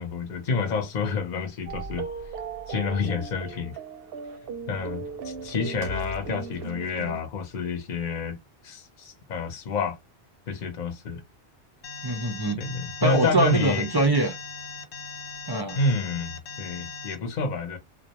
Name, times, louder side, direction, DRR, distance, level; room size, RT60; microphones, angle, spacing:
voice 1, 0.0-2.1 2.7-3.8 4.7-8.4 8.6-10.0 10.5-11.2 12.6-13.9 15.7-17.8, left 4 dB, 45° left, 0.8 m, -29 dB
sound 1, 1.7-7.2, right 4 dB, 65° right, 0.7 m, -36 dB
Alarm, 11.8-17.2, left 5 dB, 75° left, 0.9 m, -39 dB
voice 2, 12.0-12.6 13.0-14.3 15.5-15.8, right 2 dB, 40° right, 0.3 m, -23 dB
2.4 x 2.1 x 2.8 m
omnidirectional pair, 1.2 m